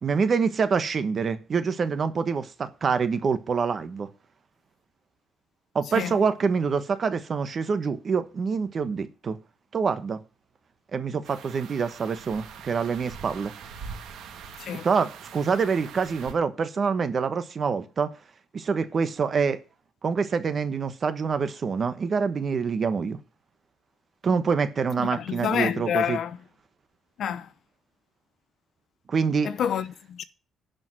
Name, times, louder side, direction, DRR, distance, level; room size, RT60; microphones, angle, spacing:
voice 1, 0.0-4.1 5.7-9.4 9.7-10.2 10.9-13.5 14.8-18.1 18.5-19.6 20.0-23.2 24.2-26.2 29.1-29.5, right 5 dB, 35° right, 1.2 m, -26 dB
sound 1, 11.2-16.3, right 6 dB, 80° right, 2.2 m, -43 dB
voice 2, 25.0-26.4 27.2-27.5 29.4-30.2, left 9 dB, 60° left, 0.8 m, -28 dB
11.0 x 5.2 x 7.6 m
cardioid pair, 140°, 0 cm